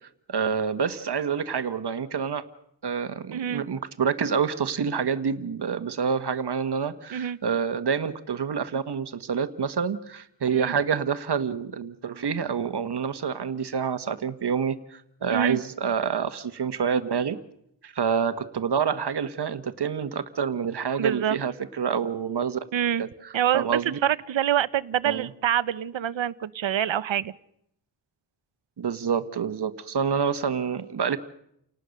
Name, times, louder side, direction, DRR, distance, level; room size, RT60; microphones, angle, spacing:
voice 1, 0.3-2.4 2.8-17.4 17.8-22.6 23.0-24.0 25.0-25.3 28.8-31.2, right 6 dB, 60° right, 12 dB, 1.5 m, -27 dB
voice 2, 3.3-3.6 7.1-7.4 10.5-10.7 15.3-15.6 21.0-21.4 22.7-23.0 23.3-27.3, right 10 dB, 85° right, 18 dB, 0.9 m, -26 dB
30.0 x 18.5 x 6.6 m, 0.74 s
wide cardioid pair, 115°, 44 cm